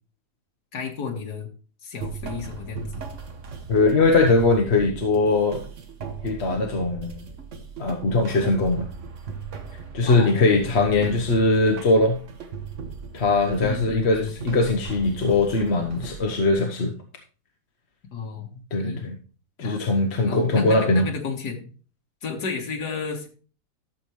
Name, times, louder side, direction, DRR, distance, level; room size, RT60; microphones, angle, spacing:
voice 1, 0.7-1.5 1.8-3.0 10.1-10.6 11.0-11.2 13.6-14.3 18.1-19.0 19.6-21.7 22.2-23.3, left 5 dB, 80° left, 2 dB, 2.1 m, -32 dB
sound 1, 2.0-16.5, right 5 dB, 55° right, 1.3 m, -37 dB
voice 2, 3.7-5.6 6.2-7.1 7.8-8.9 9.9-12.2 13.1-16.9 18.7-19.2 19.6-21.0, left 3 dB, 45° left, 3 dB, 1.2 m, -21 dB
12.5 x 7.0 x 3.1 m, 0.38 s
omnidirectional pair, 1.7 m